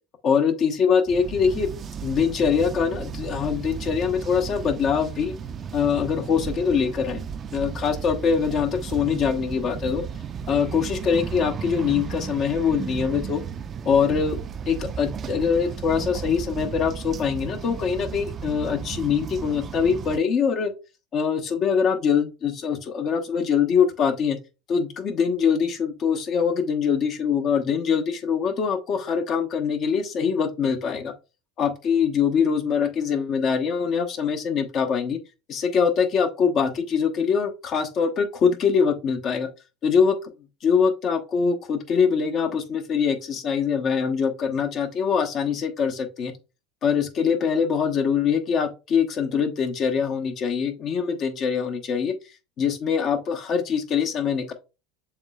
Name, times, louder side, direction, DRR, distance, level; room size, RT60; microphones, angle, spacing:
voice 1, 0.2-1.7 2.0-5.3 5.7-7.2 7.5-10.0 10.5-13.4 13.8-14.4 14.7-20.7 21.1-24.4 24.7-31.1 31.6-35.2 35.5-39.5 39.8-40.3 40.6-46.3 46.8-52.1 52.6-54.5, left 6 dB, 45° left, 1.0 m, -23 dB
sound 1, 1.1-20.2, right 7 dB, 35° right, 0.4 m, -34 dB
7.1 x 3.1 x 2.3 m
hypercardioid pair, 90°, 0 cm